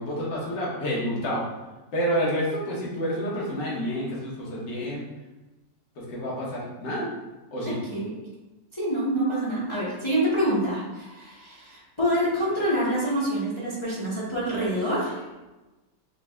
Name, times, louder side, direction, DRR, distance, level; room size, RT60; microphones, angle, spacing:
voice 1, 0.0-1.4 1.9-5.0 6.0-7.1 7.5-7.8, equal, 70° left, -6 dB, 1.8 m, -29 dB
voice 2, 7.6-8.1 8.8-15.2, equal, 40° left, -8 dB, 0.4 m, -26 dB
5.6 x 2.7 x 2.3 m, 1.1 s
omnidirectional pair, 2.0 m